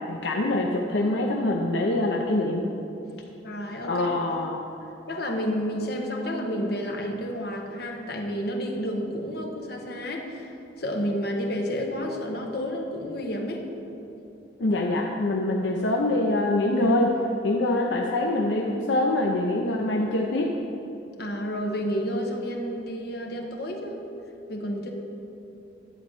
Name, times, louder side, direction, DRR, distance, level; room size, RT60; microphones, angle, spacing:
voice 1, 0.1-2.7 3.8-4.7 14.6-17.2 17.4-20.6, left 2 dB, 80° left, 0 dB, 0.7 m, -24 dB
voice 2, 3.4-4.1 5.1-10.5 10.8-13.7 21.2-24.0 24.5-24.9, equal, 60° left, 1 dB, 1.2 m, -30 dB
11.5 x 4.4 x 7.7 m, 2.9 s
head